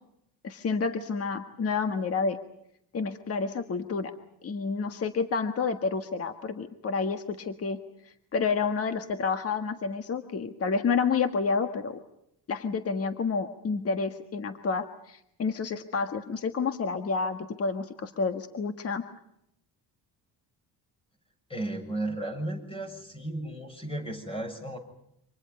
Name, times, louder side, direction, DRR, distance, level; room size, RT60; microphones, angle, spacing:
voice 1, 0.4-2.4 2.9-4.1 4.4-7.8 8.3-12.0 12.5-19.0, left 5 dB, 35° left, 8 dB, 1.6 m, -29 dB
voice 2, 21.5-24.8, right 1 dB, 15° left, 6 dB, 6.9 m, -34 dB
29.5 x 26.5 x 5.4 m, 0.76 s
cardioid pair, 140°, 40 cm